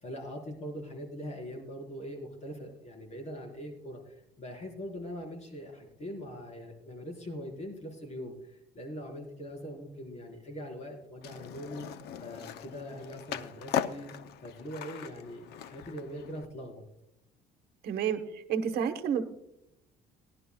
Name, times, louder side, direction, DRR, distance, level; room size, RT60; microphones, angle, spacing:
voice 1, 0.0-11.9 12.2-14.1 14.4-16.8, equal, 40° left, 1 dB, 4.0 m, -42 dB
Skateboard, 11.2-16.4, left 9 dB, 75° left, 0.6 m, -39 dB
voice 2, 17.8-19.2, right 7 dB, 70° right, 8 dB, 1.1 m, -30 dB
18.5 x 11.5 x 2.3 m, 0.81 s
cardioid pair, 110°, 17 cm